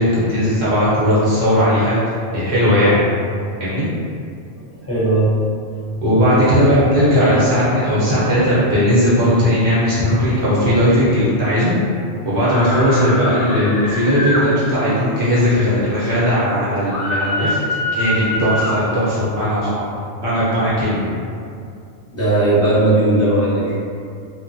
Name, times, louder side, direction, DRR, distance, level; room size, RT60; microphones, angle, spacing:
voice 1, 0.0-3.1 3.6-3.9 6.0-11.8 12.2-17.6 17.9-19.9 20.2-21.1, equal, 55° right, -10 dB, 0.9 m, -17 dB
voice 2, 4.6-5.4 22.1-23.7, right 2 dB, 15° left, -11 dB, 0.6 m, -17 dB
sound 1, 12.5-14.4 16.9-18.8, left 1 dB, 70° left, 0.8 m, -23 dB
2.9 x 2.2 x 2.5 m, 2.4 s
omnidirectional pair, 1.4 m